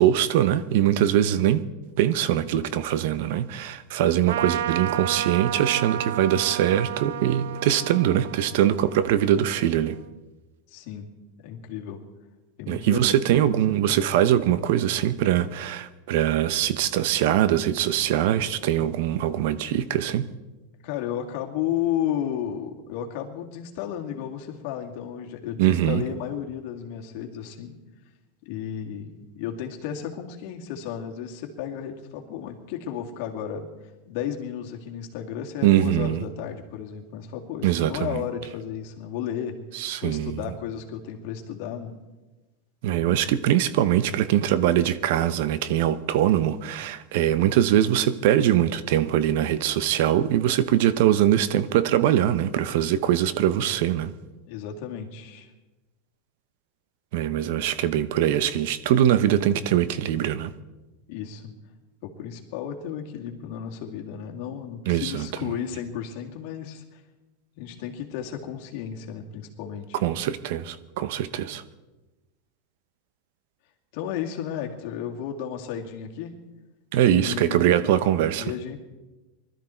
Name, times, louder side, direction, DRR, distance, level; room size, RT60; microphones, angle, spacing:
voice 1, 0.0-1.6 2.0-10.0 12.7-20.3 25.6-26.0 35.6-36.2 37.6-38.2 39.7-40.4 42.8-54.1 57.1-60.5 64.9-65.3 69.9-71.6 76.9-78.5, right 11 dB, 65° right, 0.8 m, -22 dB
Trumpet, 4.3-10.1, right 11 dB, 90° right, 0.4 m, -32 dB
voice 2, 10.7-11.1 11.4-12.0 12.6-13.9 20.8-27.7 28.5-33.7 34.1-39.6 40.0-42.0 54.5-55.5 61.1-61.5 62.0-67.0 67.6-70.0 73.9-76.3 77.0-78.0 78.4-78.8, left 9 dB, 60° left, 2.3 m, -33 dB
20.5 x 13.0 x 4.5 m
supercardioid pair, 145°, 0 cm